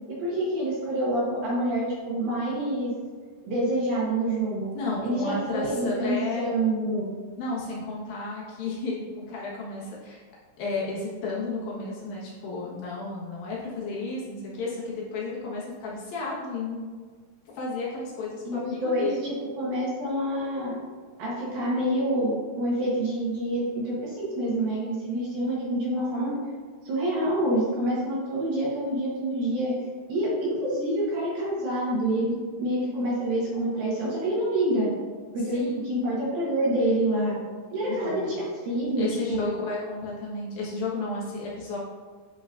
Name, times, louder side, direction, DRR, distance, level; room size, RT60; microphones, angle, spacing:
voice 1, 0.1-2.9 3.4-4.8 5.0-7.1 18.4-20.7 21.2-26.3 26.8-29.7 30.1-34.9 35.3-37.4 37.7-39.5, right 1 dB, 70° right, -6 dB, 2.4 m, -27 dB
voice 2, 4.7-6.5 7.4-10.2 10.6-16.9 17.5-19.2 35.5-35.9 37.9-38.3 39.0-41.8, left 3 dB, 65° left, -6 dB, 2.5 m, -33 dB
11.0 x 4.0 x 2.5 m, 1.5 s
omnidirectional pair, 5.5 m